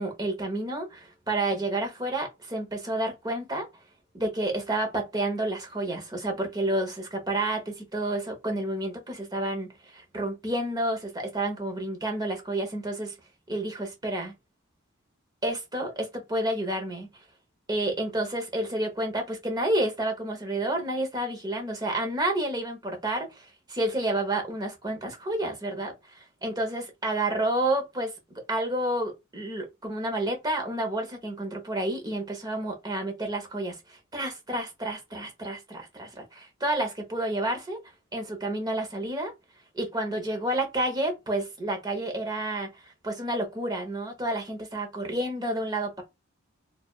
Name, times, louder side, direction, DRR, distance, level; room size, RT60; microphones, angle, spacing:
voice 1, 0.0-3.7 4.1-9.7 10.1-13.1 13.5-14.3 15.4-17.1 17.7-28.1 28.5-37.8 38.1-39.3 39.7-46.0, right 1 dB, 20° right, 1.0 m, -30 dB
4.4 x 2.6 x 2.4 m
head